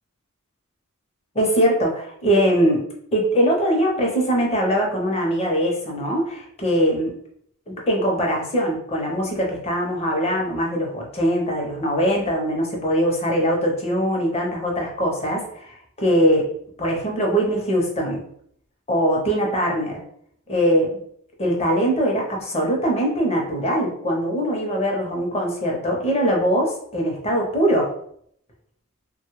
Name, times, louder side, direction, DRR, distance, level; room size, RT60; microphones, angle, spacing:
voice 1, 1.3-7.1 7.9-16.5 16.8-18.2 18.9-20.0 20.5-21.0 21.4-27.9, equal, 30° left, -1 dB, 0.7 m, -22 dB
3.1 x 2.2 x 3.1 m, 0.66 s
head